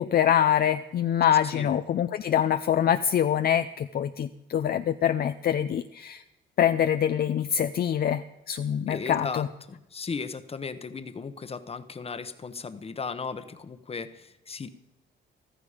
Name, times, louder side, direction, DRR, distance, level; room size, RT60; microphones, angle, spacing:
voice 1, 0.0-6.2 6.6-9.5, left 9 dB, 50° left, 9 dB, 0.5 m, -25 dB
voice 2, 8.9-14.7, left 5 dB, 30° left, 11 dB, 1.0 m, -36 dB
15.0 x 13.0 x 5.0 m, 0.94 s
cardioid pair, 90°, 20 cm